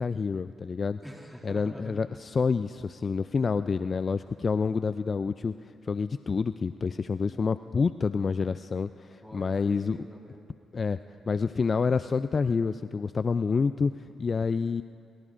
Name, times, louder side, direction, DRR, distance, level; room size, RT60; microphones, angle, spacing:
voice 1, 0.0-1.0 1.4-5.5 5.8-10.0 10.7-11.0 11.3-14.8, left 5 dB, 45° left, 12 dB, 0.3 m, -28 dB
voice 2, 1.0-2.1 7.2-7.4 9.2-10.6, equal, 5° left, -2 dB, 2.4 m, -46 dB
25.5 x 23.0 x 2.5 m, 2.5 s
supercardioid pair, 60°, 0 cm